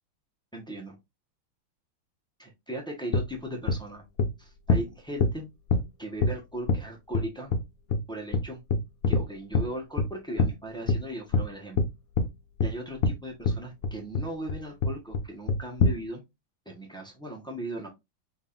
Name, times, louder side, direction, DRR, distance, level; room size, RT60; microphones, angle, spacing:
voice 1, 0.5-1.0 2.4-4.0 4.4-5.5 6.0-7.5 8.1-8.6 9.1-11.8 12.6-16.2 16.6-17.9, equal, 5° left, 0 dB, 0.5 m, -38 dB
sound 1, 3.1-3.2 3.7-3.8 4.2-4.3 4.7-4.8 5.2-5.3 5.7-5.8 6.2-6.3 6.7-6.8 7.1-7.2 7.5-7.6 7.9-8.0 8.3-8.4 8.7-9.2 9.5-9.6 10.0-10.1 10.4-10.5 10.9-11.0 11.3-11.5 11.8-11.9 12.2-12.3 12.6-12.7 13.0-13.1 13.4-13.6 13.8-14.2 14.5-14.6 14.8-15.2 15.5-15.9, left 4 dB, 65° left, 0.8 m, -23 dB
5.4 x 3.7 x 2.5 m, 0.21 s
omnidirectional pair, 2.3 m